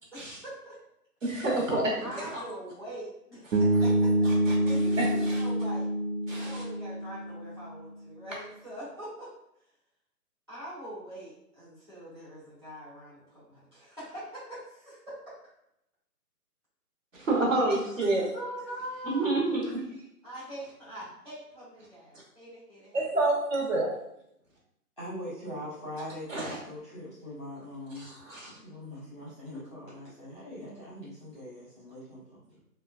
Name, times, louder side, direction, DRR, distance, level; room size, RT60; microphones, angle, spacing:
voice 1, 0.1-0.8 2.0-4.3 4.6-5.9 6.3-9.3 10.5-15.3 18.3-19.4 20.2-23.0, right 1 dB, 15° right, -11 dB, 0.8 m, -43 dB
voice 2, 1.2-2.3 3.5-3.6 4.2-5.4 6.3-6.6 17.1-18.3 19.0-19.8 22.9-23.9 26.3-26.6 27.9-28.5, right 2 dB, 55° right, -3 dB, 0.9 m, -29 dB
Bass guitar, 3.5-7.6, right 1 dB, 90° right, 0.6 m, -26 dB
voice 3, 25.0-28.1 28.3-32.4, left 1 dB, 20° left, -11 dB, 0.7 m, -42 dB
2.8 x 2.2 x 2.3 m, 0.78 s
hypercardioid pair, 175°, 47 cm